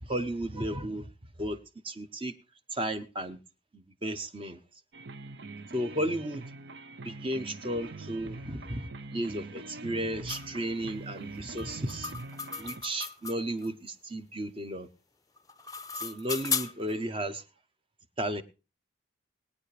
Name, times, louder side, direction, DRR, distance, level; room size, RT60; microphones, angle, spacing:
voice 1, 0.0-1.1 1.4-1.6 1.8-2.3 2.7-3.4 3.7-4.6 5.7-6.5 7.0-12.2 12.6-14.9 15.9-17.4 18.2-18.4, right 1 dB, 25° right, 0.8 m, -34 dB
sound 1, 4.9-12.8, right 3 dB, 55° right, 0.6 m, -43 dB
sound 2, 10.3-10.5 11.6-13.7 15.4-16.9, left 6 dB, 15° left, 0.6 m, -35 dB
20.5 x 9.4 x 3.3 m
head